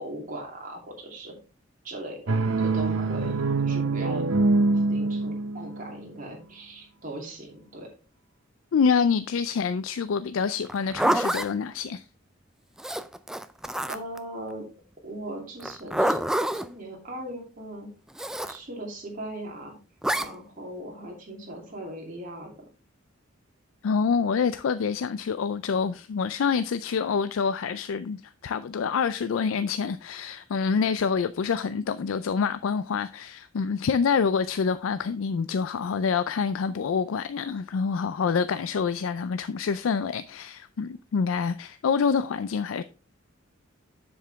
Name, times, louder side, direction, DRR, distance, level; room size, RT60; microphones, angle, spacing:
voice 1, 0.0-1.3 1.8-2.2 2.6-3.3 3.6-4.2 4.9-7.9 13.9-14.7 15.0-16.2 16.6-17.9 18.5-19.8 20.2-22.5, right 1 dB, 40° right, 2.9 m, -38 dB
sound 1, 2.3-6.0, right 3 dB, 75° right, 0.8 m, -24 dB
voice 2, 8.7-12.0 23.8-42.8, left 6 dB, 75° left, 0.4 m, -26 dB
Zipper (clothing), 10.6-11.5 12.8-14.2 15.6-16.7 18.2-18.6 20.0-20.3, right 1 dB, 5° right, 0.4 m, -27 dB
7.4 x 7.1 x 3.4 m
head